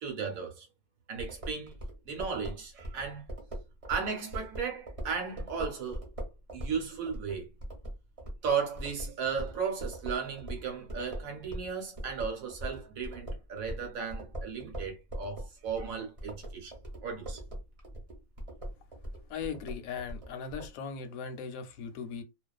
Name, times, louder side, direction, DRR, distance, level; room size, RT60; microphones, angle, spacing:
voice 1, 0.0-0.7 1.1-1.7 2.0-3.3 3.9-6.1 6.5-7.5 8.4-16.7 17.0-17.4, right 6 dB, 70° right, 1.1 m, -35 dB
sound 1, 1.2-11.7 12.0-20.7, right 1 dB, 35° right, 0.6 m, -40 dB
voice 2, 19.3-22.2, left 6 dB, 70° left, 0.9 m, -38 dB
2.4 x 2.3 x 2.3 m
omnidirectional pair, 1.6 m